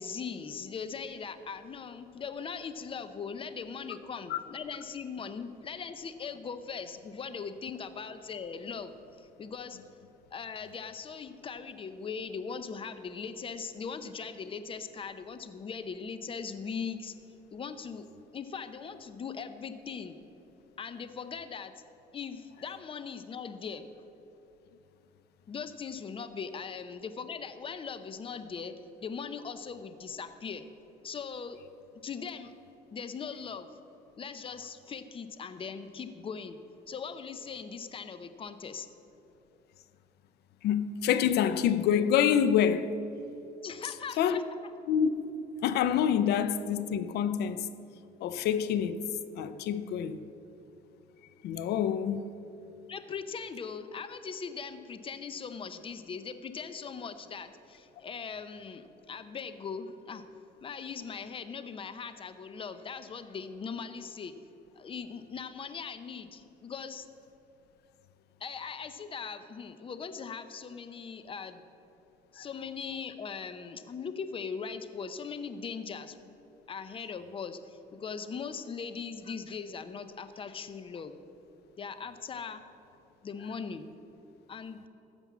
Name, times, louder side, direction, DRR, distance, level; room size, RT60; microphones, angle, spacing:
voice 1, 0.0-8.9 9.2-9.8 10.3-17.1 17.5-18.1 18.3-20.2 20.8-21.7 22.1-23.8 25.5-28.7 29.0-30.7 31.0-31.6 32.0-32.5 32.9-33.7 34.2-36.6 36.9-38.9 43.6-44.4 52.9-60.2 60.6-64.3 64.7-67.1 68.4-71.6 72.3-76.3 76.7-81.2 81.8-82.6 83.2-83.9 84.5-84.8, left 6 dB, 30° left, 0.7 m, -40 dB
voice 2, 40.6-42.9 44.2-44.4 44.9-45.3 45.6-47.7 48.2-49.0 49.4-50.3 51.4-52.2, left 9 dB, 75° left, 0.6 m, -27 dB
14.5 x 5.3 x 7.3 m
cardioid pair, 110°, 17 cm